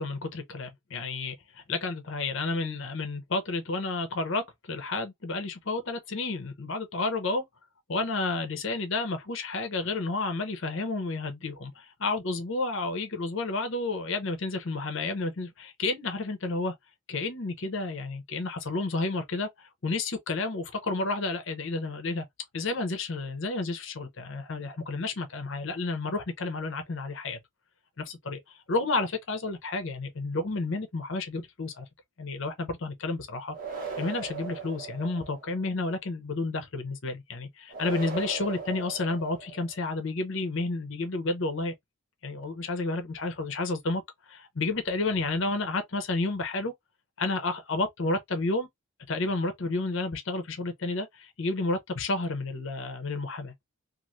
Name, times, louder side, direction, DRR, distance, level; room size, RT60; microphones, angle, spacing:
voice 1, 0.0-7.4 7.9-16.7 17.1-22.3 22.5-27.4 28.0-31.9 32.2-33.6 34.0-41.7 42.2-44.0 44.3-46.7 47.2-48.7 49.1-53.5, left 3 dB, 60° left, 0.7 m, -31 dB
sound 1, 33.5-35.6 37.7-39.8, right 5 dB, 35° right, 1.3 m, -38 dB
3.1 x 2.5 x 2.5 m
head